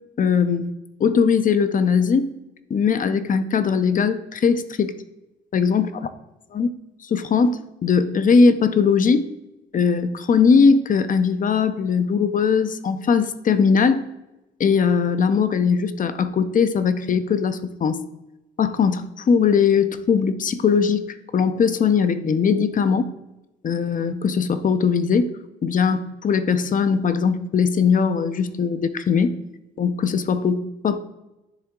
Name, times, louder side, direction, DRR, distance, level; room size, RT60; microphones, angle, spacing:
voice 1, 0.2-0.7 1.0-2.3 2.7-4.9 5.5-5.9 6.5-6.7 7.0-9.2 9.7-14.1 14.6-18.0 18.6-23.1 23.6-25.3 25.6-29.3 29.8-31.0, left 5 dB, 45° left, 11 dB, 0.6 m, -20 dB
9.7 x 3.6 x 3.7 m, 0.96 s
cardioid pair, 90°, 20 cm